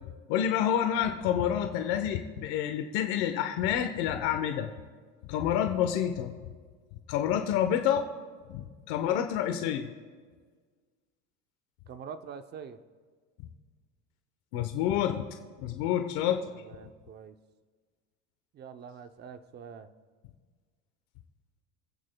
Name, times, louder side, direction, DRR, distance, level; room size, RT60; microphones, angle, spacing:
voice 1, 0.3-4.7 5.3-6.3 7.1-8.1 8.5-9.9 14.5-15.2 15.6-16.4, left 10 dB, 75° left, 5 dB, 1.0 m, -28 dB
voice 2, 11.9-12.8 16.5-17.4 18.5-19.9, right 7 dB, 30° right, 10 dB, 0.6 m, -45 dB
26.0 x 8.7 x 2.3 m, 1.5 s
cardioid pair, 140°, 34 cm